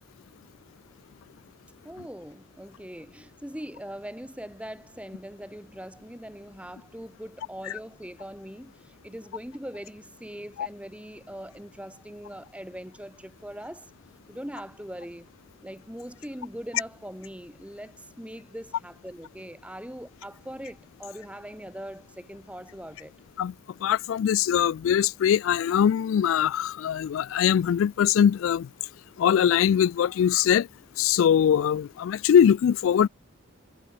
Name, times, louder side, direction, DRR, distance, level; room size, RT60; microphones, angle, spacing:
voice 1, 1.8-13.9 14.3-15.3 15.6-23.1, equal, 5° right, 1.7 m, -41 dB
voice 2, 23.8-28.7 29.2-30.7 31.0-33.1, left 9 dB, 80° left, 0.3 m, -22 dB
head